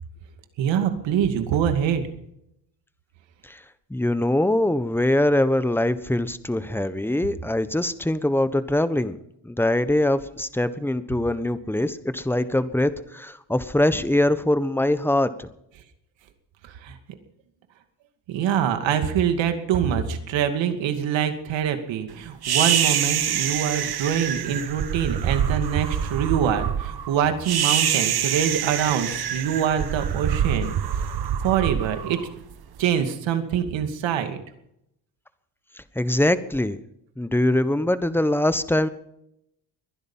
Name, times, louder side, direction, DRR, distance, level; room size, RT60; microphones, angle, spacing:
voice 1, 0.6-2.0 16.6-17.0 18.3-30.8 31.4-32.2 32.8-34.4, right 8 dB, 75° right, 7 dB, 2.5 m, -24 dB
voice 2, 3.9-9.2 9.4-15.5 35.9-36.8 37.2-38.9, left 1 dB, 5° left, 13 dB, 1.2 m, -23 dB
sound 1, 22.4-32.8, right 9 dB, 55° right, 1.5 m, -25 dB
22.0 x 11.0 x 5.7 m, 0.78 s
supercardioid pair, 80°, 46 cm